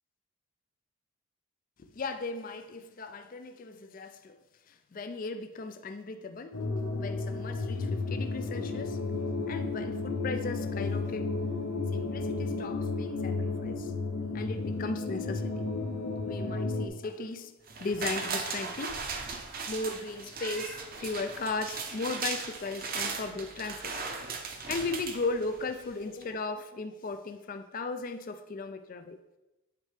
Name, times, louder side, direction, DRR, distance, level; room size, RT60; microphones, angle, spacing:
voice 1, 1.8-4.4 4.7-6.6 7.0-9.0 9.5-11.3 11.9-13.9 14.3-15.7 16.2-17.5 17.8-19.0 19.7-24.2 24.5-29.2, left 3 dB, 40° left, 0.4 m, -37 dB
sound 1, 6.5-16.9, left 3 dB, 80° left, 0.8 m, -32 dB
sound 2, 17.7-25.8 26.2-26.3, right 4 dB, 40° right, 0.7 m, -37 dB
9.1 x 4.4 x 3.4 m
head